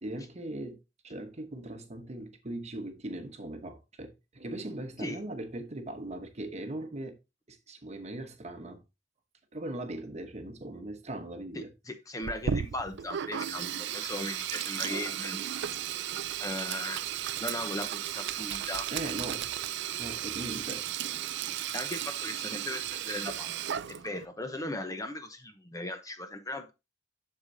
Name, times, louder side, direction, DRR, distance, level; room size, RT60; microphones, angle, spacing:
voice 1, 0.0-0.8 1.0-7.2 7.5-8.8 9.5-11.7 18.9-19.5 20.0-21.5, right 1 dB, 35° right, 1.0 m, -39 dB
voice 2, 11.5-15.4 16.4-17.0 17.4-18.9 21.7-23.6 23.9-26.7, left 1 dB, 20° left, 0.8 m, -38 dB
Sink (filling or washing), 12.2-24.3, right 10 dB, 65° right, 0.4 m, -35 dB
7.9 x 6.7 x 2.7 m
head